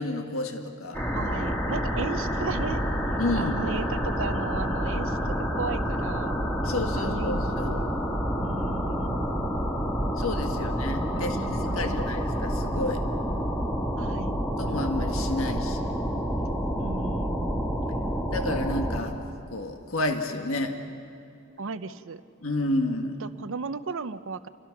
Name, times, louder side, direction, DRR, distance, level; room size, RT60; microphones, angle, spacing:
voice 1, 0.0-1.0 3.2-3.6 6.6-7.7 10.2-13.0 14.6-15.9 18.3-19.2 19.5-20.8 22.4-23.2, left 2 dB, 65° left, 5 dB, 1.8 m, -30 dB
sound 1, 0.9-19.0, equal, 10° left, 2.8 m, -28 dB
voice 2, 1.1-2.8 3.4-6.4 7.0-7.9 8.4-9.6 10.5-10.6 11.1-12.2 14.0-14.4 16.8-17.8 21.6-22.2 23.2-24.5, right 4 dB, 65° right, 13 dB, 0.7 m, -36 dB
30.0 x 22.5 x 6.0 m, 2.5 s
head